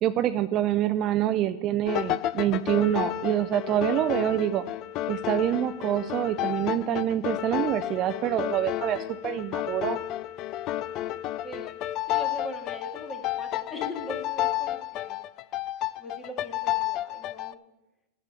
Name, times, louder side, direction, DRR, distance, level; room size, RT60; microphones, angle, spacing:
voice 1, 0.0-4.6 5.1-10.0, right 11 dB, 35° right, 11 dB, 0.4 m, -26 dB
sound 1, 1.9-17.5, left 14 dB, 35° left, 0.3 m, -31 dB
voice 2, 11.4-11.7 12.1-15.2 16.0-17.6, left 1 dB, 10° left, 3 dB, 1.9 m, -40 dB
10.0 x 7.0 x 7.5 m, 0.92 s
supercardioid pair, 145°, 0 cm